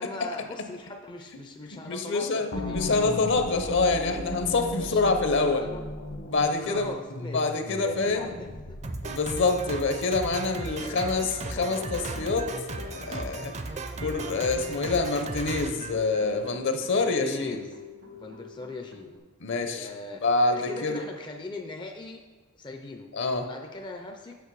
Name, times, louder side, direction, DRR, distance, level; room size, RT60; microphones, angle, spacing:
voice 1, 0.0-2.8 4.8-5.8 6.6-7.4 7.7-8.8 10.8-12.0 16.9-17.8 18.1-19.1 19.7-20.2 20.5-22.2 22.5-23.1 23.5-24.4, left 2 dB, 20° left, 3 dB, 0.4 m, -40 dB
voice 2, 1.7-2.5 2.7-5.6 6.3-6.9 7.3-8.3 9.0-12.5 12.9-13.5 14.0-17.5 19.4-19.9 20.2-21.0 23.1-23.5, left 3 dB, 55° left, 6 dB, 0.7 m, -26 dB
sound 1, 2.5-9.4, left 1 dB, 70° left, 1.3 m, -36 dB
Drum kit, 8.8-16.6, right 3 dB, 30° right, 0.5 m, -36 dB
sound 2, 12.1-19.2, left 5 dB, 70° right, 1.0 m, -47 dB
8.2 x 6.5 x 4.7 m, 1.3 s
head